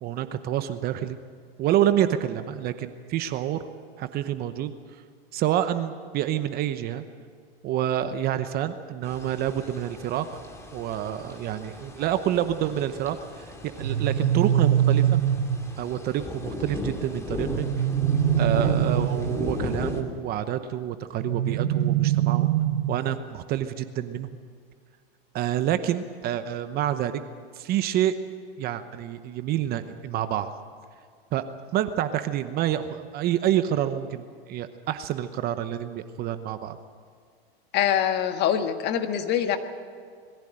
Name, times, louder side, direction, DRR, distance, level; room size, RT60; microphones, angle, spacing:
voice 1, 0.0-1.2 1.6-3.7 4.0-4.7 5.3-7.0 7.6-10.3 10.7-15.2 15.8-17.7 18.4-22.5 22.9-24.3 25.3-27.2 27.5-28.2 28.6-30.5 31.3-31.4 31.7-36.8, right 11 dB, 30° right, 11 dB, 0.9 m, -28 dB
sound 1, 9.0-20.0, left 1 dB, 10° left, 2.5 m, -36 dB
sound 2, 13.8-15.8 17.5-19.4 21.2-23.1, right 10 dB, 65° right, 1.4 m, -23 dB
voice 2, 37.7-39.6, left 9 dB, 35° left, 7 dB, 1.6 m, -24 dB
22.0 x 15.0 x 8.9 m, 2.1 s
supercardioid pair, 135°, 30 cm